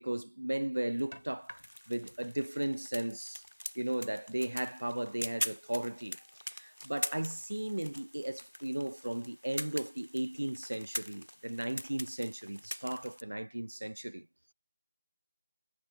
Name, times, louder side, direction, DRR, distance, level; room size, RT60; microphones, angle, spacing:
voice 1, 0.0-1.6 1.9-3.4 3.7-6.2 6.5-14.3, right 1 dB, 80° right, 1.0 m, -36 dB
sound 1, 1.0-13.2, equal, 90° left, 2.4 m, -43 dB
figure-of-eight pair, 155°, 0 cm